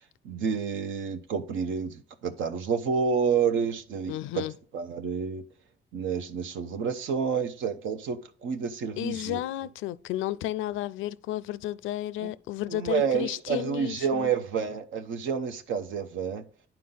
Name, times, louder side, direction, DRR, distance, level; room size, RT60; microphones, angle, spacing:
voice 1, 0.2-4.4 4.7-5.4 5.9-9.4 12.2-12.3 12.7-16.4, right 6 dB, 80° right, 0.8 m, -29 dB
voice 2, 4.1-4.5 9.0-14.3, left 14 dB, 85° left, 0.4 m, -32 dB
9.4 x 4.5 x 3.9 m
cardioid pair, 90°, 20 cm